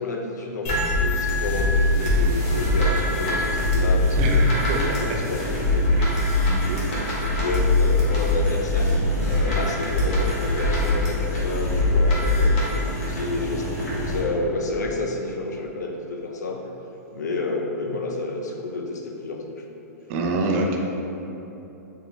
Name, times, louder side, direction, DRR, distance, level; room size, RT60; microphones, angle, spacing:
voice 1, 0.0-8.9 9.3-16.7 17.1-19.6, left 3 dB, 80° left, 2 dB, 0.5 m, -30 dB
sound 1, 0.6-14.2, left 1 dB, 55° left, 1.4 m, -22 dB
voice 2, 4.2-5.3 5.9-6.3 6.7-7.0 20.1-20.8, right 2 dB, 50° right, 1 dB, 0.5 m, -26 dB
4.5 x 2.7 x 3.2 m, 3.0 s
hypercardioid pair, 120°, 9 cm